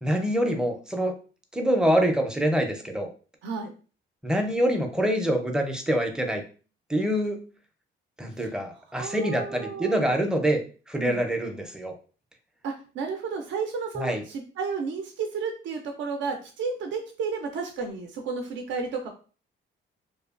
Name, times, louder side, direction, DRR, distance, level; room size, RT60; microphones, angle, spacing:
voice 1, 0.0-1.1 1.5-3.1 4.2-6.4 6.9-7.4 8.2-10.6 10.9-11.9 14.0-14.2, equal, 5° right, 4 dB, 0.5 m, -25 dB
voice 2, 3.4-3.7 9.0-10.1 11.0-11.2 12.6-19.1, right 5 dB, 70° right, 3 dB, 0.4 m, -32 dB
2.7 x 2.2 x 2.4 m, 0.38 s
cardioid pair, 90°, 20 cm